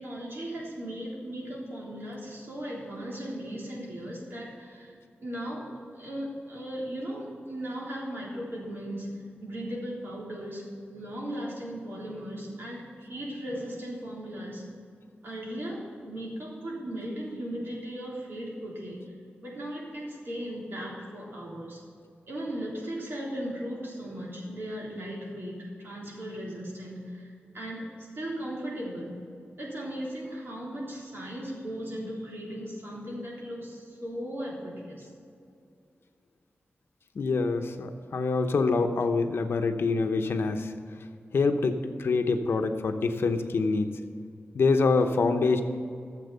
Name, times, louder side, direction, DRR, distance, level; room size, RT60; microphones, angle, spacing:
voice 1, 0.0-4.9 5.2-14.6 15.2-19.0 19.4-21.8 22.3-29.2 29.6-35.1, equal, 60° right, -4 dB, 3.6 m, -37 dB
voice 2, 37.1-40.7 41.3-43.9 44.5-45.6, left 4 dB, 70° left, 6 dB, 0.9 m, -25 dB
13.5 x 7.5 x 6.9 m, 2.4 s
wide cardioid pair, 155°, 4 cm